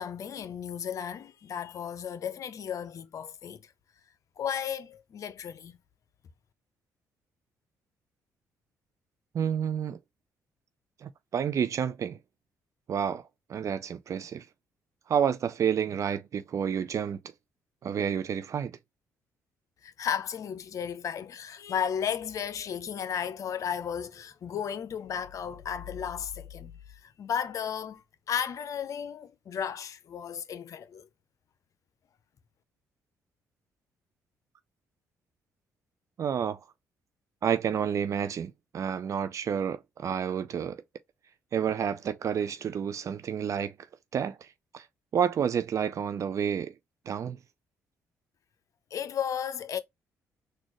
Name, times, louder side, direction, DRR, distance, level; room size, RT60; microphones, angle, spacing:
voice 1, 0.0-3.7 4.4-5.8 19.8-31.1 48.9-49.8, left 8 dB, 55° left, 0.6 m, -34 dB
voice 2, 9.3-10.0 11.0-12.2 12.9-13.2 13.5-14.4 15.1-17.2 17.8-18.7 36.2-36.6 37.4-40.8 41.5-43.7 44.1-44.5 44.7-44.9 45.1-46.7 47.1-47.4, right 8 dB, 55° right, 0.5 m, -29 dB
4.1 x 2.4 x 3.0 m
cardioid pair, 75°, 7 cm